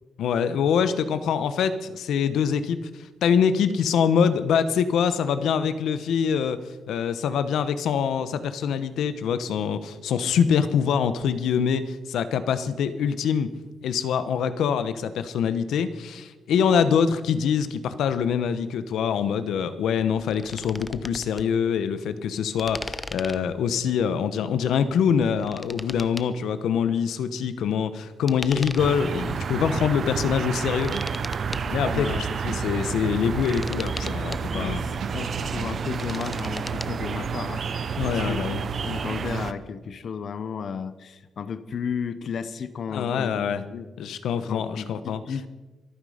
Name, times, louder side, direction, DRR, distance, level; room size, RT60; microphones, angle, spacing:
voice 1, 0.2-6.6 6.9-13.5 13.8-30.9 31.7-34.8 38.0-38.6 42.9-43.6 44.0-45.2, left 7 dB, 90° left, 12 dB, 1.0 m, -24 dB
sound 1, 20.1-21.5 22.6-23.6 25.1-26.3 28.3-29.1 29.8-29.9 30.4-31.7 33.1-34.4 35.7-36.9, left 2 dB, 10° left, 0.5 m, -38 dB
sound 2, 28.8-39.5, right 6 dB, 40° right, 0.6 m, -30 dB
sound 3, 30.1-30.6 30.9-31.1 31.3-34.2 34.4-35.7 35.9-36.0, right 7 dB, 70° right, 1.2 m, -36 dB
voice 2, 31.9-32.2 34.5-34.8 35.1-43.9 44.5-45.5, left 6 dB, 45° left, 14 dB, 0.8 m, -34 dB
24.5 x 9.5 x 5.1 m, 1.2 s
wide cardioid pair, 180°, 0 cm